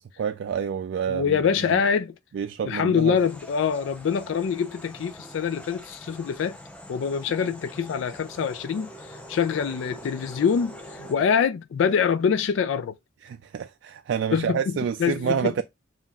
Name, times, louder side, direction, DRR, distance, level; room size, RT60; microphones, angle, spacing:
voice 1, 0.2-1.8 2.3-3.2 13.2-15.6, right 7 dB, 70° right, 0.3 m, -28 dB
voice 2, 1.1-2.1 2.6-6.6 6.9-10.7 11.1-13.0 14.3-15.6, left 7 dB, 75° left, 0.3 m, -25 dB
sound 1, 3.1-11.1, equal, 10° left, 0.6 m, -44 dB
7.2 x 2.4 x 2.3 m
head